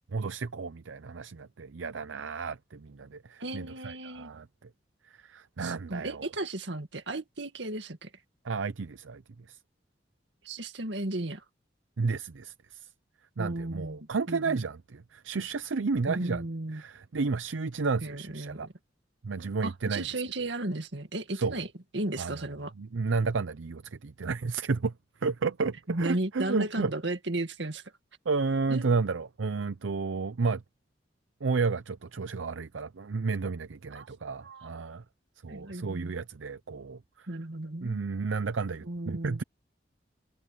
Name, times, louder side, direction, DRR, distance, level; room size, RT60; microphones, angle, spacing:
voice 1, 0.1-4.7 5.1-6.3 8.4-9.2 9.5-9.6 12.0-12.9 13.4-16.4 16.7-18.7 19.2-20.1 21.3-21.6 22.2-22.4 22.8-24.9 25.2-26.9 28.3-30.6 31.4-35.0 35.4-37.3 37.8-39.4, right 4 dB, 90° right, 0.6 m, -32 dB
voice 2, 3.4-4.3 5.6-8.1 10.4-11.4 13.4-14.6 16.1-16.8 18.0-18.7 19.6-21.7 21.9-22.7 25.9-27.8 28.7-28.9 33.9-34.7 35.5-36.1 37.3-38.0 38.9-39.4, right 2 dB, 70° right, 2.0 m, -35 dB
head